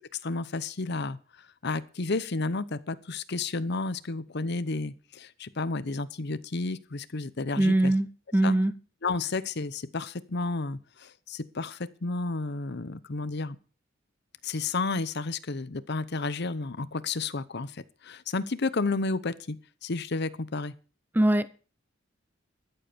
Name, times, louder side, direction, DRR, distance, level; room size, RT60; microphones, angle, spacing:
voice 1, 0.2-1.2 1.6-7.9 8.4-8.6 9.0-13.6 14.4-19.6 19.8-20.7, left 3 dB, 55° left, 0.8 m, -31 dB
voice 2, 7.6-8.1 8.3-8.7 21.1-21.5, right 1 dB, 10° right, 0.6 m, -22 dB
13.5 x 7.9 x 6.7 m
head